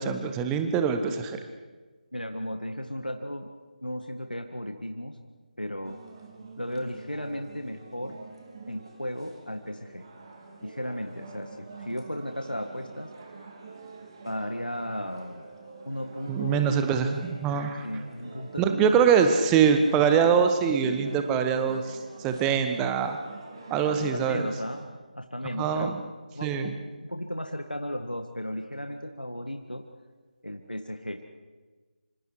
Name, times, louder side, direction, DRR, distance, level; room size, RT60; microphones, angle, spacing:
voice 1, 0.0-1.4 16.3-17.9 18.6-22.0 22.2-23.2 23.7-24.5 25.6-25.9 26.4-26.8, right 7 dB, 10° right, 7 dB, 1.2 m, -23 dB
voice 2, 2.1-3.5 3.8-5.2 5.6-6.0 6.6-8.2 8.7-10.0 10.6-13.1 14.2-15.5 15.8-16.8 17.8-18.9 24.1-26.0 26.3-26.8 27.0-29.8 30.4-31.2, equal, 90° left, 5 dB, 1.7 m, -35 dB
sound 1, 5.8-24.9, right 3 dB, 35° right, 3.5 m, -46 dB
26.5 x 26.0 x 4.8 m, 1.3 s
figure-of-eight pair, 155°, 5 cm